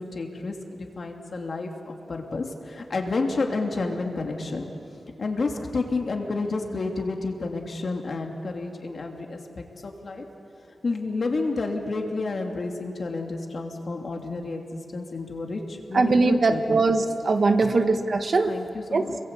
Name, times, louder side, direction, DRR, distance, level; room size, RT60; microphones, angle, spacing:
voice 1, 0.0-4.7 5.2-10.3 10.8-16.8 17.7-18.0 18.5-19.2, left 3 dB, 50° left, 2 dB, 2.8 m, -30 dB
voice 2, 15.9-18.5 18.9-19.0, right 3 dB, 45° right, 7 dB, 1.3 m, -21 dB
30.0 x 22.0 x 8.5 m, 2.9 s
wide cardioid pair, 145°, 0 cm